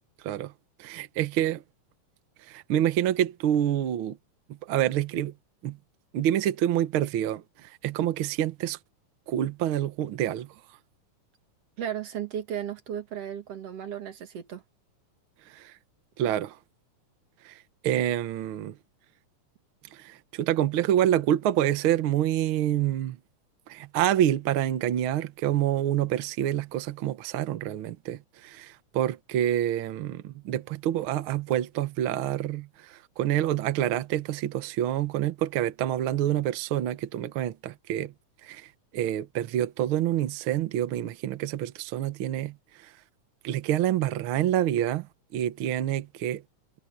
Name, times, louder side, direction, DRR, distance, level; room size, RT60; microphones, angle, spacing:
voice 1, 0.2-0.5 0.8-1.6 2.4-4.2 4.5-5.3 5.6-5.8 6.1-8.8 9.3-10.5 15.5-15.8 16.2-16.6 17.4-18.8 19.9-23.2 23.7-38.1 38.4-42.9 43.4-46.4, right 11 dB, 75° right, 1.2 m, -27 dB
voice 2, 11.8-14.6, right 9 dB, 55° right, 2.5 m, -35 dB
omnidirectional pair, 3.8 m